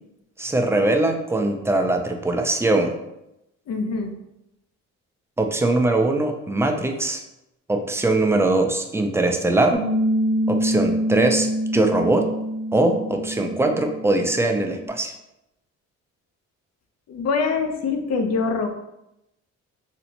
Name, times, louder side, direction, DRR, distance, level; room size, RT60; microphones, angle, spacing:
voice 1, 0.4-2.9 5.4-7.2 7.7-9.8 10.5-12.3 12.7-15.1, right 2 dB, 10° right, 4 dB, 0.4 m, -21 dB
voice 2, 3.7-4.2 17.1-18.7, left 4 dB, 60° left, 5 dB, 0.6 m, -24 dB
Piano, 9.7-14.9, equal, 80° left, 1.2 m, -26 dB
4.1 x 2.0 x 2.8 m, 0.88 s
cardioid pair, 90°, 30 cm